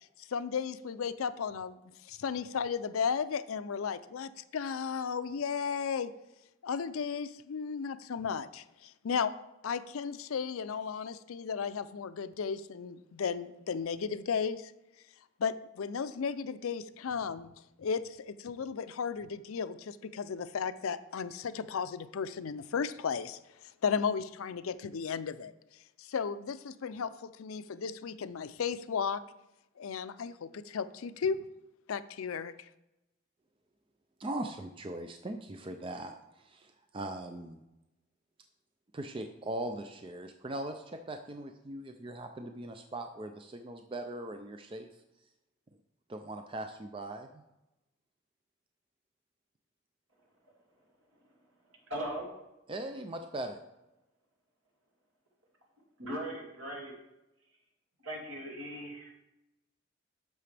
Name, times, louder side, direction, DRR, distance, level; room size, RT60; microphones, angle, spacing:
voice 1, 0.2-1.8 2.0-6.1 6.6-9.3 9.6-14.7 15.4-17.5 17.8-23.4 23.8-25.5 26.0-29.2 29.8-31.5 31.9-32.7, left 6 dB, 80° left, 14 dB, 0.4 m, -34 dB
voice 2, 34.2-37.6 38.9-44.9 46.1-47.3 52.7-53.6, right 1 dB, 25° right, 6 dB, 0.4 m, -40 dB
voice 3, 51.9-52.3 56.0-56.9 58.0-59.1, right 1 dB, 70° right, -1 dB, 2.3 m, -39 dB
10.5 x 6.8 x 3.3 m, 0.94 s
head